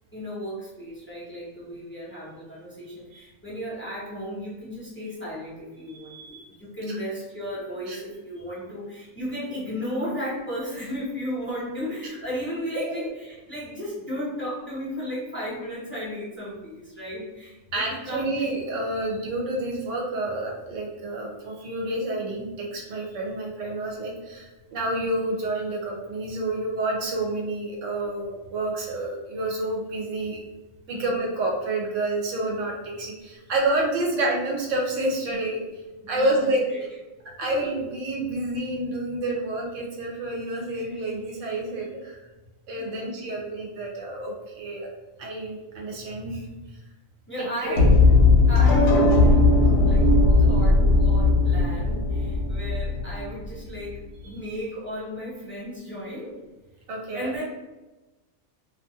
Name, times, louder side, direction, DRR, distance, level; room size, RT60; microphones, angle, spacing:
voice 1, 0.1-18.5 30.9-31.2 36.0-37.0 37.4-37.7 40.7-41.0 42.8-43.2 47.3-47.9 48.5-49.4 49.8-50.1 50.4-56.4 57.1-57.4, equal, 20° left, -8 dB, 0.3 m, -35 dB
voice 2, 5.9-6.5 6.9-7.0 7.9-8.0 12.7-13.1 17.7-30.4 30.9-35.6 36.1-36.6 37.4-42.2 42.7-44.9 45.2-46.5 47.4-47.8 56.9-57.3, right 2 dB, 70° right, -2 dB, 1.0 m, -29 dB
sound 1, 47.7-53.7, left 3 dB, 75° left, 0.9 m, -18 dB
2.4 x 2.4 x 2.7 m, 1.1 s
omnidirectional pair, 1.4 m